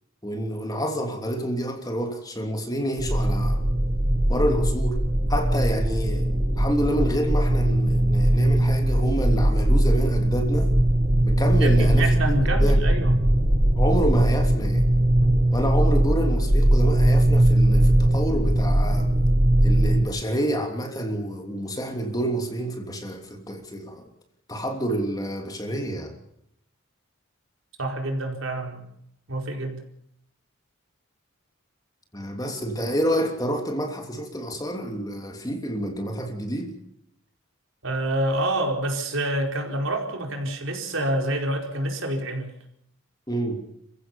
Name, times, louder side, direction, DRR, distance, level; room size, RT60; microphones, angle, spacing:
voice 1, 0.2-3.6 4.3-5.0 5.3-10.8 11.2-12.8 13.7-14.9 15.5-19.1 19.6-24.1 24.5-26.1 32.1-36.8 43.3-43.6, right 1 dB, 20° left, 3.0 m, -28 dB
sound 1, 3.0-20.0, right 1 dB, 40° right, 3.3 m, -20 dB
voice 2, 11.6-13.2 15.2-15.5 27.8-28.9 29.3-29.8 37.8-42.5, right 1 dB, 70° right, 4.6 m, -27 dB
29.5 x 15.5 x 7.1 m
head